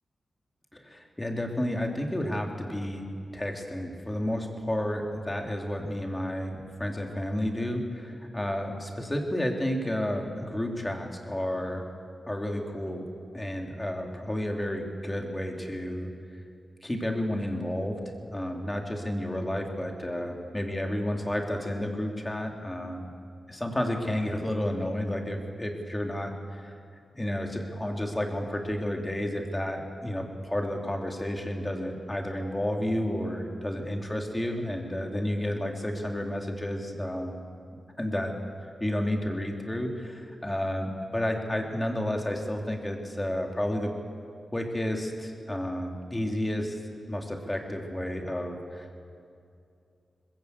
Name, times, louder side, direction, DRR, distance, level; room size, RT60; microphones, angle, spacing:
voice 1, 0.7-3.1 3.3-11.9 12.3-13.0 13.3-16.1 16.8-23.1 23.5-26.7 27.1-37.4 38.0-38.3 38.8-43.9 44.5-46.8 47.1-49.0, left 1 dB, 15° left, 2 dB, 3.0 m, -31 dB
20.0 x 16.0 x 8.3 m, 2.5 s
cardioid pair, 60°, 0 cm